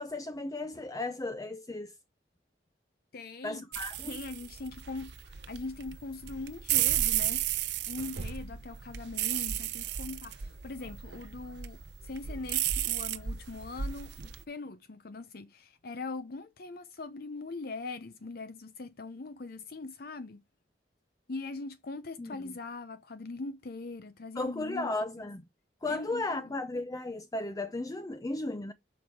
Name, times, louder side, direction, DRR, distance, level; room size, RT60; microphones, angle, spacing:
voice 1, 0.0-1.9 3.4-4.2 22.2-22.5 24.4-25.4 25.8-28.7, left 2 dB, 20° left, 0.5 m, -35 dB
voice 2, 3.1-3.7 4.1-7.4 7.9-20.4 21.3-24.9 25.9-26.4, left 3 dB, 60° left, 0.7 m, -41 dB
sound 1, 3.7-14.4, right 11 dB, 70° right, 0.8 m, -33 dB
7.6 x 5.4 x 4.8 m
head